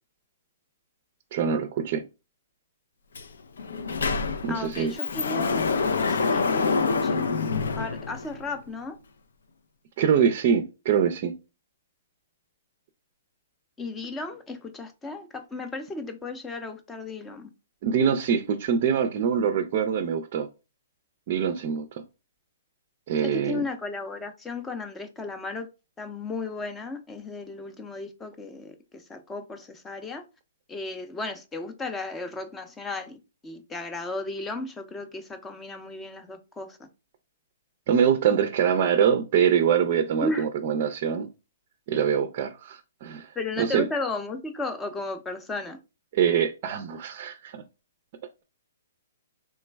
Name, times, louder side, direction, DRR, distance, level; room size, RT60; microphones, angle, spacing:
voice 1, 1.3-2.0 4.4-4.9 10.0-11.3 17.8-20.5 21.3-21.9 23.1-23.6 37.9-41.3 41.9-43.3 43.6-43.8 46.1-47.6, right 7 dB, 45° right, 0.4 m, -24 dB
Sliding door, 3.1-3.3 3.6-8.6, left 4 dB, 80° left, 0.4 m, -26 dB
voice 2, 4.5-5.8 6.1-9.0 13.8-17.5 23.2-25.7 26.0-28.7 29.1-30.2 30.7-33.2 33.4-36.8 40.2-40.5 43.4-45.8, left 3 dB, 10° left, 0.5 m, -34 dB
3.2 x 2.2 x 3.2 m
hypercardioid pair, 140°, 0 cm